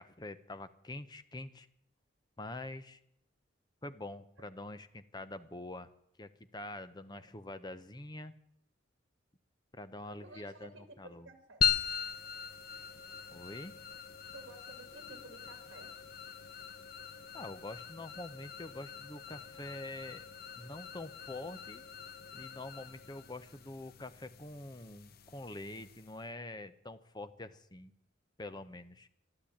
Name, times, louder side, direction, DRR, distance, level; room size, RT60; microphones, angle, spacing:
voice 1, 0.0-1.7 2.4-3.0 3.8-5.9 6.2-8.4 9.7-11.3 13.3-13.7 17.3-20.3 20.6-21.8 22.3-27.9 28.4-29.1, left 2 dB, 20° left, 11 dB, 0.8 m, -45 dB
voice 2, 10.0-11.7 14.3-15.9, right 2 dB, 60° right, 7 dB, 2.3 m, -53 dB
sound 1, 11.6-26.3, left 8 dB, 50° left, 0.9 m, -40 dB
13.0 x 12.0 x 8.6 m, 0.73 s
head